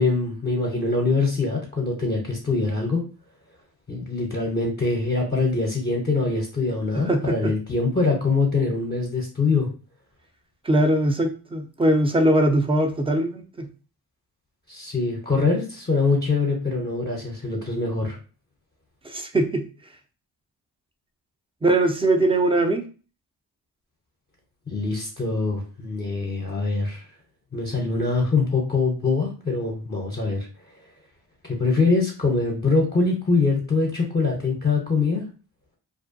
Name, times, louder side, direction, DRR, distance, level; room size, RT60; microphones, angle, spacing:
voice 1, 0.0-3.0 3.9-9.7 14.7-18.2 24.7-27.0 27.5-30.5 31.4-35.2, left 3 dB, 20° left, 0 dB, 0.7 m, -23 dB
voice 2, 6.9-7.5 10.6-13.7 19.0-19.6 21.6-22.8, right 1 dB, 10° right, 4 dB, 0.5 m, -21 dB
2.5 x 2.1 x 2.5 m, 0.36 s
cardioid pair, 60°, 45 cm